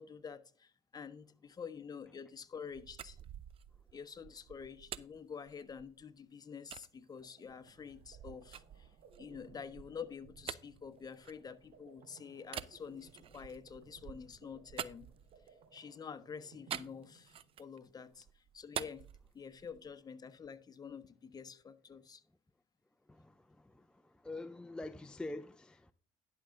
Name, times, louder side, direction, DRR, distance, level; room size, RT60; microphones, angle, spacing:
voice 1, 0.0-3.2 3.9-8.9 9.2-15.1 15.7-19.0 19.3-22.2, left 6 dB, 30° left, 1.1 m, -48 dB
sound 1, 2.7-6.1 6.7-6.9 7.5-11.9 12.5-15.7 16.7-17.8 18.1-19.9, right 9 dB, 50° right, 0.6 m, -48 dB
sound 2, 6.9-17.8, right 5 dB, 70° right, 2.1 m, -63 dB
voice 2, 23.1-25.9, left 2 dB, 5° left, 0.5 m, -46 dB
11.0 x 6.4 x 3.8 m
supercardioid pair, 85°, 12 cm